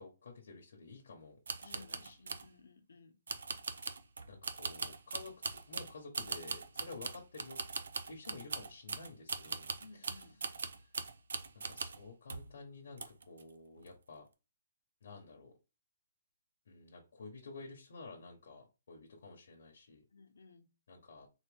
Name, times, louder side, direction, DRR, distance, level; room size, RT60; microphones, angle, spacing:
voice 1, 0.0-1.4 1.6-2.2 4.3-7.6 8.1-10.3 10.7-10.9 11.5-14.3 15.0-15.5 16.7-20.0 20.9-21.3, left 3 dB, 55° left, 1.0 m, -51 dB
sound 1, 1.5-2.5 3.3-12.0 12.3-12.6 13.0-13.4 13.8-13.9, right 4 dB, 75° right, 0.5 m, -41 dB
voice 2, 1.6-3.1 9.8-10.4 20.1-20.7, left 3 dB, 80° left, 0.9 m, -58 dB
3.9 x 2.8 x 3.4 m
hypercardioid pair, 180°, 0 cm